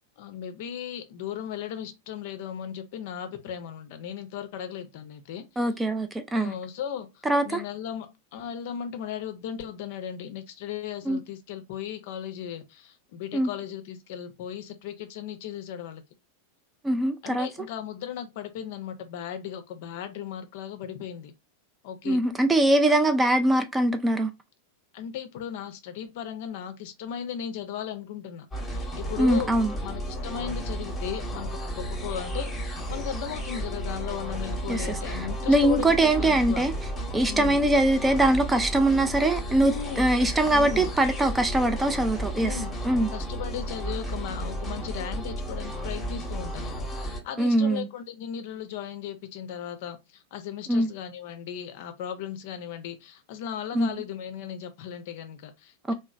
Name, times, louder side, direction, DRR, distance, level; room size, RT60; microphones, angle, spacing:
voice 1, 0.2-5.7 6.3-16.0 17.2-21.3 21.8-22.2 24.9-29.5 29.8-36.6 37.3-37.6 39.6-40.1 40.5-40.9 42.3-42.8 43.1-55.9, left 9 dB, 50° left, 0.5 m, -36 dB
voice 2, 5.6-6.5 7.3-7.6 11.1-11.2 13.3-13.5 16.8-17.5 22.1-24.3 29.2-29.7 34.7-36.7 37.1-42.5 42.8-43.1 47.4-47.9 50.7-50.9 53.7-53.9 55.9-56.0, right 1 dB, 10° right, 0.3 m, -22 dB
sound 1, 28.5-47.2, equal, 15° left, 0.8 m, -33 dB
2.9 x 2.0 x 2.4 m
figure-of-eight pair, 90°, 0 cm